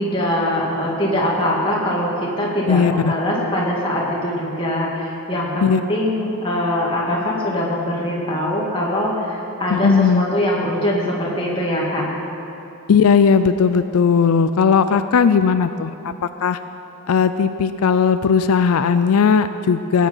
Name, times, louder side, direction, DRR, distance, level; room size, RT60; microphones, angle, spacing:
voice 1, 0.0-12.1, left 1 dB, 25° left, -5 dB, 2.4 m, -22 dB
voice 2, 2.7-3.1 5.6-5.8 9.7-10.2 12.9-16.1 16.4-16.6 17.1-20.1, left 6 dB, 90° left, 11 dB, 0.4 m, -17 dB
16.5 x 9.4 x 5.6 m, 2.8 s
head